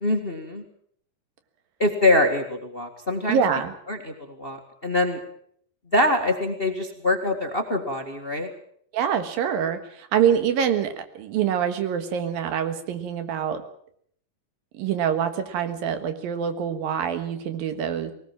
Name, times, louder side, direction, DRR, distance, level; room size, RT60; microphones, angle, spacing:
voice 1, 0.0-0.6 1.8-3.4 3.9-5.2 5.9-8.5, left 1 dB, 25° left, 5 dB, 1.4 m, -24 dB
voice 2, 3.3-3.7 8.9-13.6 14.7-18.1, right 8 dB, 90° right, 9 dB, 3.4 m, -25 dB
20.0 x 19.0 x 7.5 m, 0.64 s
omnidirectional pair, 4.0 m